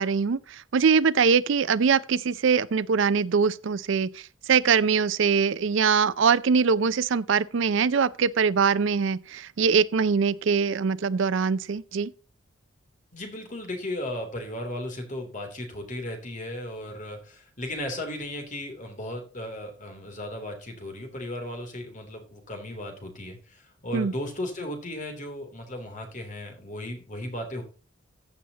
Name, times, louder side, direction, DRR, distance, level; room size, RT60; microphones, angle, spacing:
voice 1, 0.0-12.1 23.9-24.1, right 5 dB, 60° right, 0.4 m, -23 dB
voice 2, 13.1-27.6, left 1 dB, 35° left, 3.1 m, -36 dB
15.0 x 7.1 x 2.9 m
head